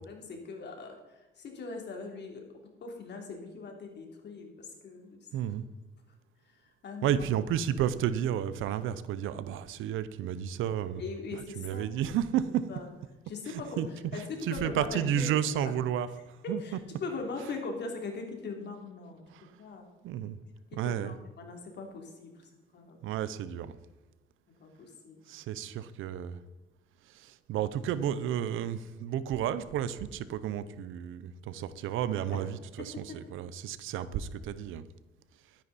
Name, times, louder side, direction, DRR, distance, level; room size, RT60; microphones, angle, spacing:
voice 1, 0.0-2.4 2.8-5.3 6.4-7.2 11.0-11.9 12.7-12.9 13.3-13.8 14.1-15.3 15.6-15.7 16.4-19.2 19.6-19.9 20.7-23.0 24.6-25.4 32.9-33.0, left 3 dB, 60° left, 2 dB, 3.1 m, -41 dB
voice 2, 5.3-5.6 7.0-11.0 11.3-12.7 13.5-13.9 14.1-16.6 19.3-19.5 20.0-20.4 20.7-21.2 23.0-23.8 25.3-26.4 27.0-34.9, right 10 dB, 90° right, 15 dB, 0.7 m, -32 dB
12.5 x 10.0 x 4.2 m, 1.2 s
cardioid pair, 90°, 20 cm